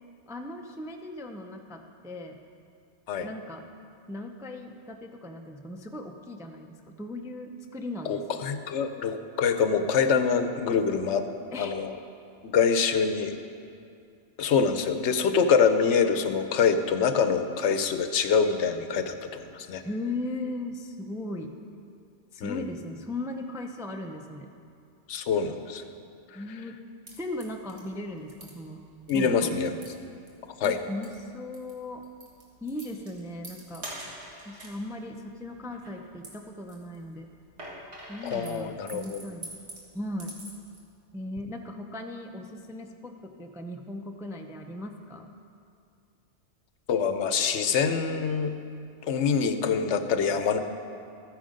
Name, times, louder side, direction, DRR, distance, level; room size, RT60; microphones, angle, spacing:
voice 1, 0.3-2.4 3.2-3.6 4.1-8.2 11.5-11.7 19.8-21.5 22.3-24.5 26.3-26.8 27.2-28.8 29.1-29.6 30.6-32.0 32.6-33.9 34.4-37.3 38.1-39.5 39.9-40.4 41.1-45.3, left 1 dB, 5° right, 3 dB, 0.3 m, -37 dB
voice 2, 8.0-11.2 11.6-12.0 12.4-13.4 14.4-19.8 22.4-22.6 25.1-25.8 29.1-29.7 30.6-30.8 38.2-39.2 46.9-48.6 49.0-50.6, left 6 dB, 70° left, 8 dB, 1.0 m, -25 dB
sound 1, 27.1-40.8, right 1 dB, 60° right, 2.0 m, -47 dB
13.0 x 9.2 x 5.1 m, 2.5 s
omnidirectional pair, 1.2 m